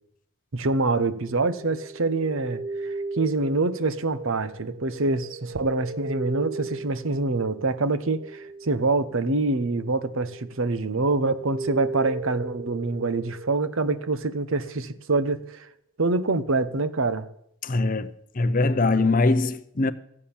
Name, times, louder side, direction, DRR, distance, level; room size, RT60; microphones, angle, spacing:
voice 1, 0.5-15.7 16.0-17.3, right 3 dB, 60° right, 0.8 m, -25 dB
sound 1, 1.3-10.6 11.0-14.7, right 3 dB, 35° right, 0.5 m, -38 dB
voice 2, 17.6-19.9, left 3 dB, 35° left, 0.6 m, -22 dB
14.5 x 8.6 x 7.1 m
head